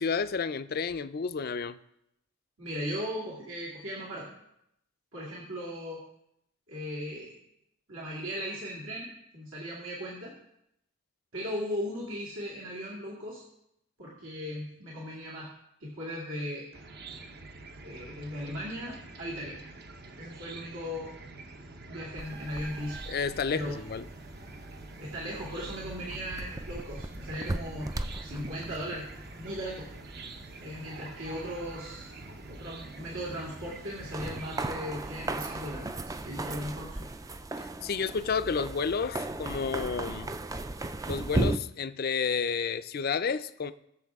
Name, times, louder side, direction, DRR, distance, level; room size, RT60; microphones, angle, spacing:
voice 1, 0.0-1.8 23.1-24.0 37.6-40.3 41.1-43.7, left 5 dB, 50° left, 0.4 m, -31 dB
voice 2, 2.6-4.3 5.1-6.0 6.7-7.3 7.9-10.3 11.3-13.4 14.0-15.5 15.8-16.7 17.8-19.6 20.2-21.1 21.9-23.0 23.5-23.7 25.0-27.9 28.2-29.0 29.4-29.9 30.6-32.1 32.5-37.0, equal, 75° right, 2.3 m, -37 dB
Chicken rooster / Cricket, 16.7-35.8, right 2 dB, 50° right, 0.9 m, -47 dB
sound 1, 22.2-41.6, right 2 dB, 15° right, 0.4 m, -38 dB
20.0 x 7.0 x 3.6 m
head